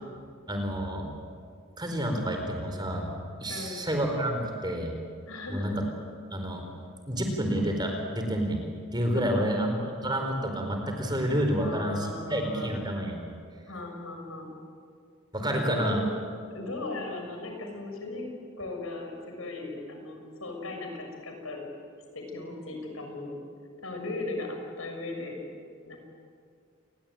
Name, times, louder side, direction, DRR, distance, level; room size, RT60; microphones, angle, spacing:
voice 1, 0.5-1.0 1.8-3.1 3.4-4.9 5.5-5.7 6.3-6.6 7.1-8.6 8.9-9.7 10.0-13.3 15.3-16.0, equal, 20° right, 3 dB, 4.4 m, -29 dB
voice 2, 3.5-3.8 5.3-5.8 9.1-9.4 11.6-12.8 13.7-14.5 15.4-16.1 16.5-18.3 18.6-21.6 22.1-23.4 23.8-25.4 25.8-26.0, left 2 dB, 75° left, 2 dB, 6.6 m, -37 dB
28.5 x 22.0 x 9.0 m, 2.2 s
head